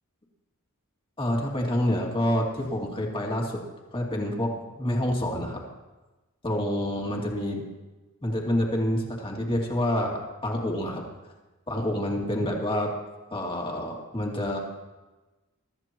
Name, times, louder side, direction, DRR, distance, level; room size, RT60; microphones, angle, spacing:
voice 1, 1.2-3.6 3.9-5.6 6.4-7.6 8.2-11.0 11.7-12.9 13.3-14.6, left 1 dB, 25° left, 0 dB, 2.4 m, -27 dB
23.5 x 14.0 x 3.0 m, 1.2 s
head